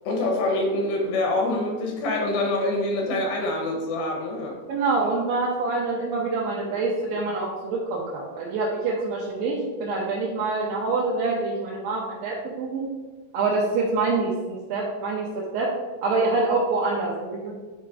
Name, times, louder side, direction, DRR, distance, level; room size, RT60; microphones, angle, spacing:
voice 1, 0.0-4.5, left 2 dB, 75° left, 1 dB, 3.2 m, -25 dB
voice 2, 4.7-12.9 13.3-15.7 16.0-17.6, right 3 dB, 75° right, -5 dB, 2.1 m, -26 dB
9.8 x 3.6 x 4.9 m, 1.2 s
omnidirectional pair, 5.2 m